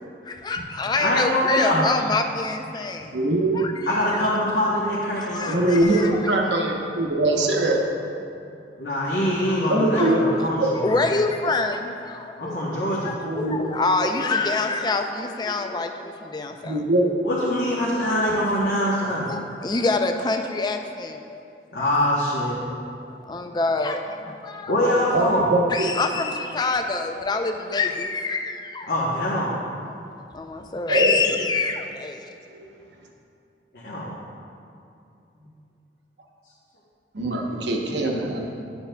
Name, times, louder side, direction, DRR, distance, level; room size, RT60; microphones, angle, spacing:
voice 1, 0.2-3.2 3.5-3.9 4.2-4.3 5.2-6.5 9.7-10.2 10.8-12.8 13.0-16.9 19.3-21.4 21.8-21.9 23.3-24.7 25.7-28.9 30.3-32.3, left 3 dB, 25° left, 5 dB, 0.3 m, -26 dB
voice 2, 1.0-1.8 3.9-6.1 8.8-11.0 12.4-13.1 17.2-19.2 21.7-22.6 24.7-25.4 28.9-29.5 33.7-34.2, left 1 dB, 65° left, -7 dB, 1.0 m, -24 dB
voice 3, 3.1-3.6 5.5-7.9 9.7-10.4 13.2-13.7 16.6-17.1 25.1-25.9 30.9-31.1 32.5-32.6 37.1-38.5, right 1 dB, 85° right, 1 dB, 0.9 m, -22 dB
10.5 x 7.0 x 2.2 m, 2.6 s
head